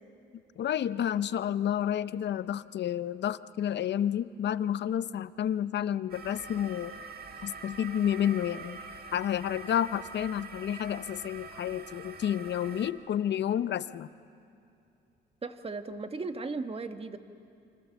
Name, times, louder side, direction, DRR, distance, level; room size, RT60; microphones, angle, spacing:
voice 1, 0.6-7.0 7.4-8.8 9.1-14.1, left 10 dB, 60° left, 15 dB, 0.7 m, -30 dB
sound 1, 6.1-12.9, right 4 dB, 50° right, 1.9 m, -45 dB
voice 2, 15.4-17.2, right 3 dB, 30° right, 8 dB, 1.5 m, -36 dB
28.5 x 25.5 x 7.2 m, 2.6 s
cardioid pair, 90°, 20 cm